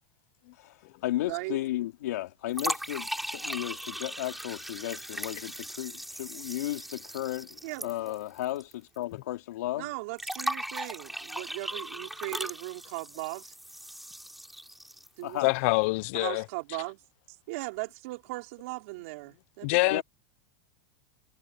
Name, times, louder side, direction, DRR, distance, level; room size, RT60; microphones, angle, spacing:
voice 1, 0.5-9.9 15.2-15.6 19.9-20.0, left 14 dB, 80° left, 3.1 m, -34 dB
voice 2, 1.3-1.6 7.6-7.9 9.7-13.5 15.2-15.4 16.1-17.0 17.5-20.0, right 23 dB, 55° right, 4.8 m, -38 dB
sound 1, 2.5-8.7 9.0-9.1 10.2-15.2, right 1 dB, ahead, 5.1 m, -38 dB
voice 3, 15.4-16.4 19.6-20.0, left 26 dB, 50° left, 0.4 m, -25 dB
supercardioid pair, 160°, 9 cm